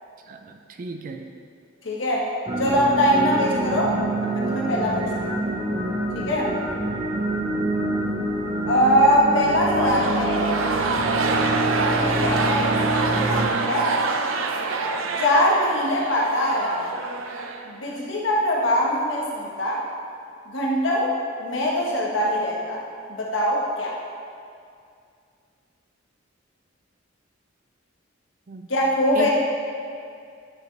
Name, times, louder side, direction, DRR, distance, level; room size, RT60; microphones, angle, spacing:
voice 1, 0.3-1.3 28.5-28.7 29.1-29.3, right 3 dB, 45° right, 5 dB, 0.4 m, -35 dB
voice 2, 1.8-2.3 2.6-4.0 4.2-5.3 6.1-6.5 8.7-10.6 11.9-13.9 15.2-16.9 17.6-19.8 20.4-22.8 23.2-23.9 28.7-29.3, equal, 70° left, -4 dB, 1.3 m, -22 dB
sound 1, 2.5-13.5, right 1 dB, 25° right, 1.0 m, -26 dB
sound 2, 9.6-18.1, right 4 dB, 90° right, 0.6 m, -26 dB
10.0 x 6.5 x 3.3 m, 2.3 s
head